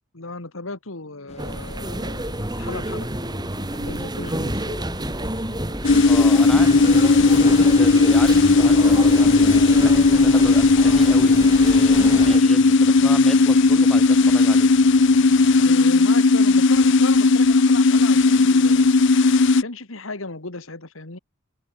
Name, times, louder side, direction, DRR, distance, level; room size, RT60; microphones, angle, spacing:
voice 1, 0.1-3.1 3.7-4.8 15.6-18.9 19.6-21.2, left 3 dB, 85° left, 2.5 m, -35 dB
sound 1, 1.3-15.8, left 1 dB, 30° left, 3.6 m, -43 dB
sound 2, 1.4-12.4, right 1 dB, 20° right, 5.6 m, -29 dB
sound 3, 5.8-19.6, left 3 dB, 65° left, 0.7 m, -16 dB
voice 2, 6.0-14.7, equal, 5° left, 4.8 m, -34 dB
head